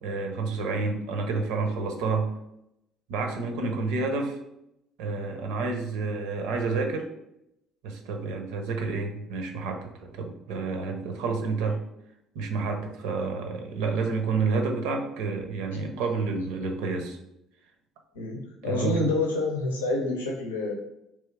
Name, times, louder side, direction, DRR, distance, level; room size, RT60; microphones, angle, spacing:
voice 1, 0.0-2.3 3.1-4.4 5.0-7.1 7.8-11.8 12.3-17.2 18.6-19.1, right 4 dB, 65° right, 4 dB, 0.6 m, -29 dB
voice 2, 18.1-20.7, left 2 dB, 75° left, 0 dB, 0.7 m, -28 dB
3.4 x 3.1 x 4.6 m, 0.83 s
figure-of-eight pair, 50°, 0 cm